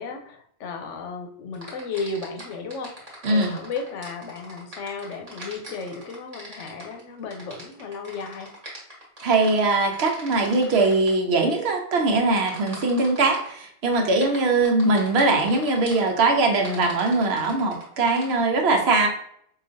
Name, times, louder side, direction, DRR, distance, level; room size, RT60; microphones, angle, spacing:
voice 1, 0.0-8.5, left 4 dB, 85° left, 6 dB, 0.9 m, -34 dB
sound 1, 1.5-11.1 12.4-13.5 13.9-16.1 16.6-18.3, right 1 dB, 35° right, 1.1 m, -41 dB
voice 2, 3.2-3.5 9.2-19.1, right 3 dB, 65° right, 2 dB, 0.9 m, -21 dB
4.8 x 2.4 x 2.5 m, 0.66 s
omnidirectional pair, 1.2 m